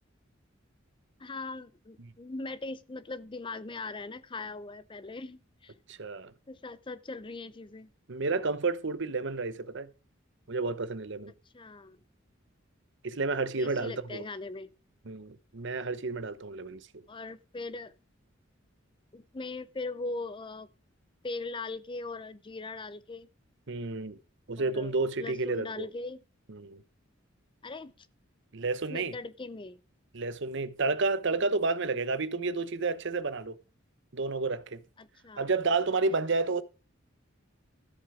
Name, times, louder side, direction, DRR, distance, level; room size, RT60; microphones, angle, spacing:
voice 1, 1.2-5.7 6.5-7.9 11.5-12.0 13.6-14.7 17.1-17.9 19.1-20.7 21.2-23.3 24.6-26.2 27.6-28.1 28.9-29.8 35.0-35.5, left 3 dB, 25° left, 0.6 m, -40 dB
voice 2, 5.9-6.3 8.1-9.9 10.5-11.3 13.0-14.2 15.1-17.0 23.7-24.2 24.5-25.9 26.5-26.8 28.5-29.2 30.1-33.6 34.1-34.8 35.4-36.6, right 3 dB, 65° right, 0.9 m, -31 dB
13.5 x 8.1 x 4.9 m
head